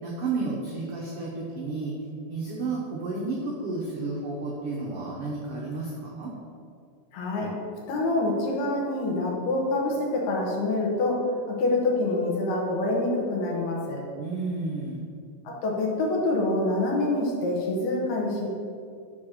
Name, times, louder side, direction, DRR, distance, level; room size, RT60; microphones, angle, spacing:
voice 1, 0.0-1.9 2.3-6.3 14.1-15.0, right 3 dB, 80° right, -5 dB, 1.3 m, -32 dB
voice 2, 7.1-7.5 7.9-11.2 11.5-14.0 15.4-18.5, left 2 dB, 75° left, -2 dB, 2.7 m, -26 dB
6.5 x 4.0 x 6.3 m, 2.3 s
omnidirectional pair, 3.9 m